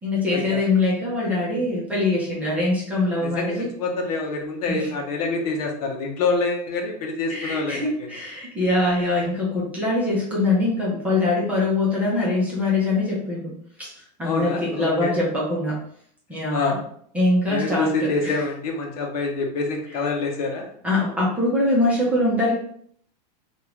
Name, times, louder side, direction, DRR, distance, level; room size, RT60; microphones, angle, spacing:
voice 1, 0.0-3.7 4.7-4.9 7.3-13.5 13.8-13.9 14.2-15.8 16.3-16.8 17.1-18.4 20.8-22.5, left 2 dB, 5° right, -7 dB, 0.8 m, -23 dB
voice 2, 3.2-8.1 14.2-15.1 16.5-16.8 17.5-20.6, left 3 dB, 65° left, 1 dB, 0.9 m, -26 dB
3.6 x 2.5 x 3.0 m, 0.62 s
supercardioid pair, 160°, 21 cm